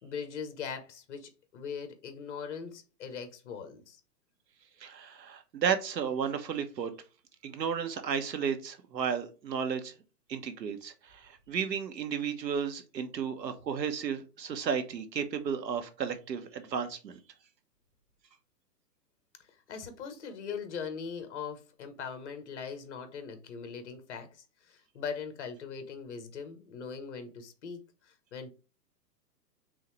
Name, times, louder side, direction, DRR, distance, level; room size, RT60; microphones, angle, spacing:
voice 1, 0.0-4.0 19.7-24.3 24.7-27.8 28.1-28.5, left 6 dB, 45° left, 1.2 m, -40 dB
voice 2, 4.8-6.9 7.4-9.9 10.3-17.2, right 7 dB, 85° right, 1.2 m, -33 dB
4.1 x 3.7 x 3.2 m
hypercardioid pair, 160°, 49 cm